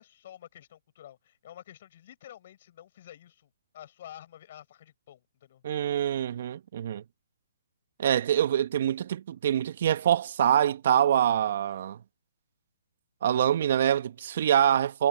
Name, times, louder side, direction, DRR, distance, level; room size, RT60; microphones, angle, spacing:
voice 1, 0.0-5.6, left 11 dB, 50° left, 5.3 m, -50 dB
voice 2, 5.6-7.0 8.0-12.0 13.2-15.1, right 10 dB, 55° right, 1.1 m, -25 dB
hypercardioid pair, 145°, 0 cm